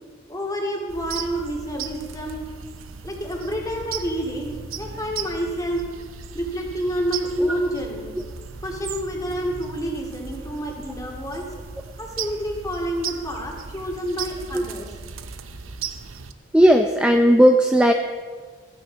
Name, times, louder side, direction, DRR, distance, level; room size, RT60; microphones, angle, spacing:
voice 1, 0.3-2.4 3.0-5.8 6.3-8.1 8.6-11.5 12.0-14.9, equal, 15° left, 0 dB, 2.3 m, -29 dB
sound 1, 0.9-16.3, right 6 dB, 75° right, 0.8 m, -37 dB
voice 2, 16.5-17.9, equal, 5° right, 4 dB, 0.5 m, -16 dB
15.0 x 15.0 x 4.0 m, 1.5 s
head